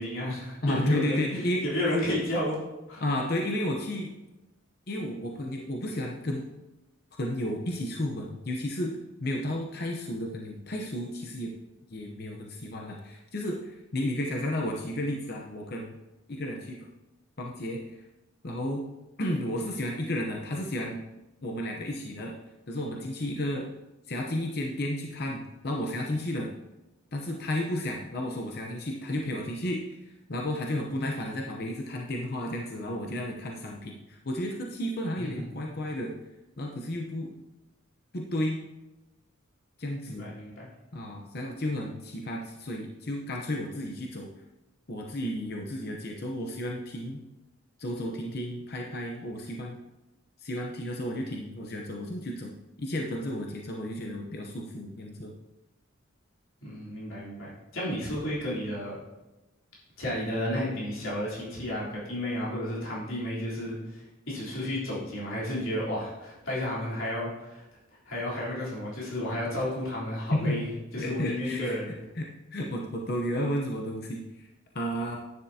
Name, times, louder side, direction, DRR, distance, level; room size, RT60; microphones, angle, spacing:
voice 1, 0.0-1.3 1.6-2.6 2.9-3.0 35.2-35.4 40.0-40.7 56.6-59.0 60.0-67.6 68.1-71.9, left 1 dB, 80° left, -7 dB, 3.5 m, -32 dB
voice 2, 0.6-1.6 3.0-4.1 4.9-6.5 7.2-11.5 11.9-16.0 16.3-16.9 17.4-18.0 18.4-18.8 19.2-21.0 21.4-22.4 22.7-23.7 24.1-26.5 27.1-36.1 36.6-37.3 38.1-38.6 39.8-40.3 40.9-44.3 44.9-47.2 47.8-49.8 50.4-55.3 70.3-70.6 71.0-71.8 72.2-74.5 74.7-75.2, left 1 dB, 50° left, 0 dB, 0.8 m, -32 dB
10.5 x 9.3 x 2.8 m, 1.0 s
head